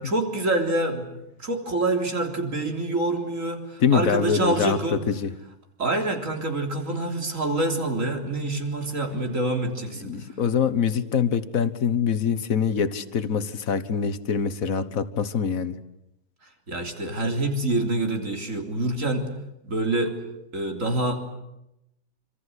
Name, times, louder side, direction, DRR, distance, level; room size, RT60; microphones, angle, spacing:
voice 1, 0.0-5.0 5.8-10.2 16.7-19.3 19.6-20.2 20.5-21.2, right 2 dB, 65° right, 4 dB, 4.0 m, -26 dB
voice 2, 3.8-5.3 10.1-15.8, left 7 dB, 80° left, 12 dB, 1.7 m, -24 dB
27.5 x 26.0 x 8.1 m, 0.85 s
omnidirectional pair, 1.4 m